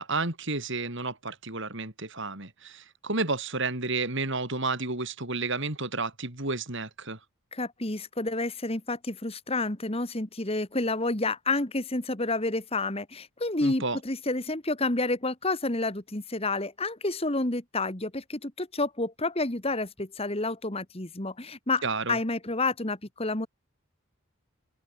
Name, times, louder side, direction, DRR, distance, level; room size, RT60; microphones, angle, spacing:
voice 1, 0.0-7.2 13.6-14.0 21.8-22.2, right 3 dB, 55° right, 4.0 m, -31 dB
voice 2, 7.5-21.8 22.1-23.5, left 2 dB, 25° left, 1.8 m, -29 dB
open air
head